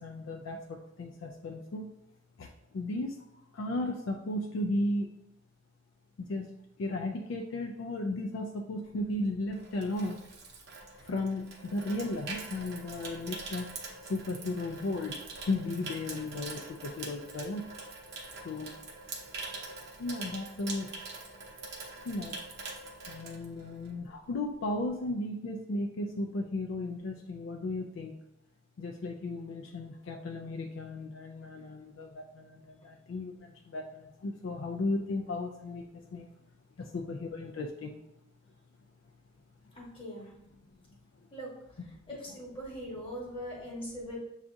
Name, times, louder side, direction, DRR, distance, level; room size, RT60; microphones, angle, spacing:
voice 1, 0.0-1.9 2.4-3.2 3.5-5.1 6.2-10.2 11.0-17.7 18.4-18.7 20.0-20.9 22.0-22.4 23.1-28.2 28.8-36.3 36.8-38.0, left 2 dB, 65° left, 3 dB, 0.3 m, -35 dB
Water tap faucet / Sink (filling or washing), 9.0-24.1 24.3-24.6, right 3 dB, 55° right, 0.7 m, -44 dB
voice 2, 39.7-40.3 41.3-41.5 42.1-44.2, equal, 25° left, -3 dB, 1.2 m, -41 dB
6.8 x 2.4 x 2.6 m, 0.82 s
head